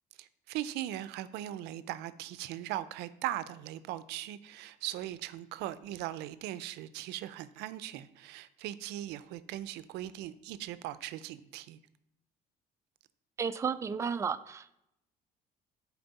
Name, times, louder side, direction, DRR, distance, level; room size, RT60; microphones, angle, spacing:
voice 1, 0.2-11.8, right 13 dB, 90° right, 14 dB, 0.4 m, -39 dB
voice 2, 13.4-14.7, right 6 dB, 15° right, 11 dB, 0.3 m, -33 dB
10.5 x 4.4 x 4.0 m, 0.81 s
cardioid pair, 110°, 17 cm